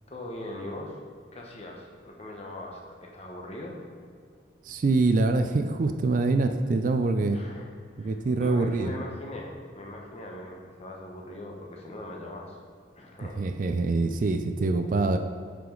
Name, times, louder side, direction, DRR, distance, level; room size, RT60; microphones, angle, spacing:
voice 1, 0.1-1.0 1.3-3.8 7.3-12.6 12.9-13.4, left 1 dB, 35° left, 0 dB, 1.0 m, -41 dB
voice 2, 4.6-7.4 8.0-8.9 13.2-15.2, right 3 dB, 45° right, 8 dB, 0.3 m, -25 dB
7.9 x 5.0 x 3.8 m, 2.1 s
head